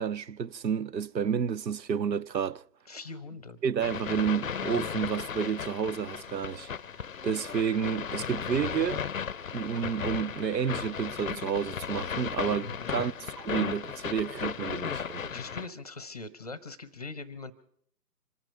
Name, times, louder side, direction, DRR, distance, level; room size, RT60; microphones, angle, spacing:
voice 1, 0.0-2.6 3.6-6.7 7.2-9.1 9.5-15.2, right 7 dB, 90° right, 0.7 m, -30 dB
voice 2, 2.9-3.6 12.6-13.0 15.2-17.5, left 3 dB, 25° left, 0.8 m, -42 dB
sound 1, 3.8-15.7, left 7 dB, 55° left, 0.5 m, -35 dB
25.5 x 8.9 x 5.6 m
figure-of-eight pair, 150°, 49 cm